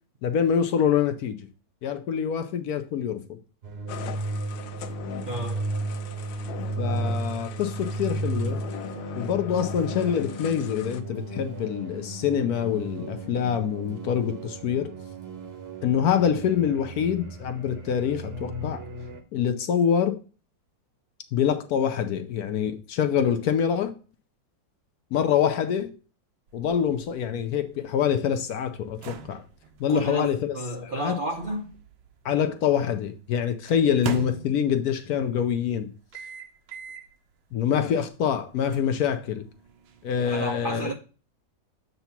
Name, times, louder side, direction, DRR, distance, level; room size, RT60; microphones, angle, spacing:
voice 1, 0.2-1.4 1.8-3.4 6.8-8.6 9.1-14.9 15.8-18.8 19.3-20.2 21.3-23.9 25.1-25.9 26.5-29.4 29.8-31.2 32.2-35.9 37.5-39.4 40.0-40.9, left 8 dB, 70° left, 1.0 m, -25 dB
sound 1, 3.6-19.2, right 2 dB, 45° right, 0.9 m, -34 dB
sound 2, 3.9-11.0, left 10 dB, 85° left, 1.4 m, -40 dB
voice 2, 5.3-5.7 29.9-31.7 40.3-40.9, right 2 dB, 65° right, 0.5 m, -32 dB
sound 3, 26.5-32.6 33.7-35.0 36.1-37.2 37.6-37.8 38.7-40.4, right 7 dB, 80° right, 1.5 m, -41 dB
7.9 x 2.8 x 5.8 m
omnidirectional pair, 2.0 m